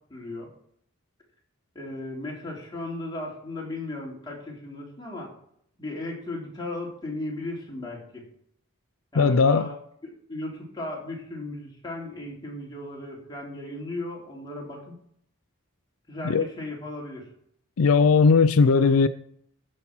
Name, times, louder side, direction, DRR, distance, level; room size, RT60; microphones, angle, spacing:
voice 1, 0.1-0.5 1.8-5.3 5.8-8.2 9.1-9.7 10.0-14.9 16.1-17.2, left 2 dB, 20° left, 3.5 m, -36 dB
voice 2, 9.2-9.7 16.2-16.5 17.8-19.1, left 5 dB, 85° left, 0.5 m, -18 dB
14.0 x 5.6 x 6.0 m
head